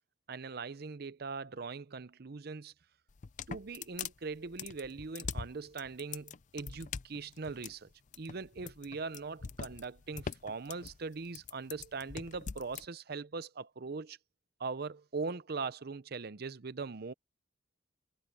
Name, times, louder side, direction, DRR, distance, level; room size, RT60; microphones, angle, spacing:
voice 1, 0.3-2.7 3.5-7.9 8.2-14.2 14.6-17.1, right 4 dB, 55° right, 0.7 m, -41 dB
sound 1, 3.1-12.9, left 6 dB, 40° left, 0.5 m, -43 dB
head